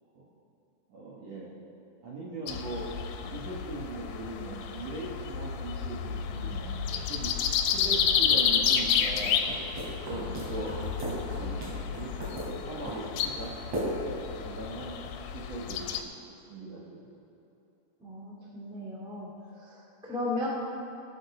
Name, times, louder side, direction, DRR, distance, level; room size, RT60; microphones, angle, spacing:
voice 1, 0.9-1.5 2.0-2.9 3.2-7.3 7.6-9.4 10.1-14.9 15.3-15.9 16.5-17.0, right 2 dB, 60° right, -5 dB, 1.8 m, -40 dB
sound 1, 2.5-16.0, left 7 dB, 80° left, 2.2 m, -31 dB
sound 2, 8.8-14.3, right 1 dB, 45° right, 4.0 m, -38 dB
voice 2, 10.0-10.5 18.0-20.5, left 2 dB, 5° right, -5 dB, 0.5 m, -37 dB
19.0 x 6.4 x 4.8 m, 2.9 s
omnidirectional pair, 4.6 m